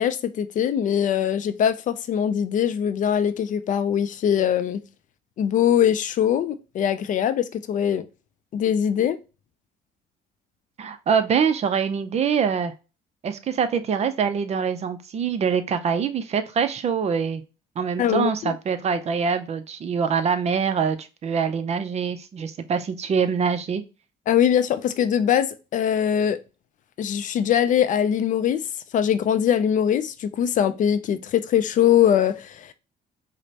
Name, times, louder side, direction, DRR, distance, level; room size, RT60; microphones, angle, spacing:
voice 1, 0.0-4.8 5.4-8.0 8.5-9.2 18.0-18.5 24.3-26.4 27.0-28.6 28.9-32.7, left 9 dB, 50° left, 0.4 m, -22 dB
voice 2, 10.8-12.7 13.2-17.4 17.8-23.8, right 6 dB, 40° right, 0.5 m, -24 dB
5.0 x 2.1 x 2.8 m
cardioid pair, 110°, 17 cm